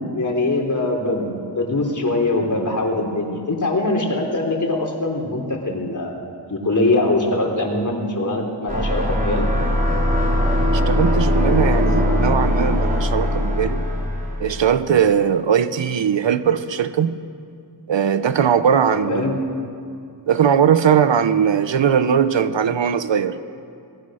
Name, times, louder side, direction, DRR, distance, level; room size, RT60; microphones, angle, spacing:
voice 1, 0.0-6.2 6.5-9.5 18.9-19.4, left 2 dB, 45° left, 1 dB, 3.7 m, -22 dB
sound 1, 8.7-14.6, left 1 dB, 20° right, 4.1 m, -20 dB
voice 2, 10.7-13.8 14.4-17.2 17.9-19.4 20.3-23.4, right 7 dB, 80° right, 12 dB, 1.0 m, -19 dB
25.5 x 19.5 x 6.5 m, 2.4 s
wide cardioid pair, 120°, 44 cm